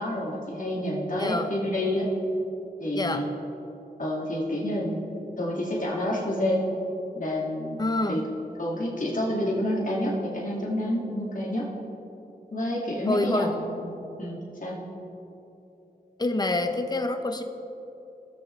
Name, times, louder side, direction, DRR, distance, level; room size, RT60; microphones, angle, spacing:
voice 1, 0.0-2.1 2.8-3.3 4.0-5.0 5.4-6.6 7.1-7.8 8.1-8.2 8.6-11.7 12.5-14.8, left 1 dB, 55° left, -5 dB, 2.2 m, -29 dB
voice 2, 1.2-1.5 2.9-3.3 7.8-8.3 13.1-13.5 16.2-17.4, left 2 dB, 25° left, 7 dB, 0.7 m, -26 dB
17.5 x 6.8 x 3.3 m, 3.0 s
wide cardioid pair, 55°, 17 cm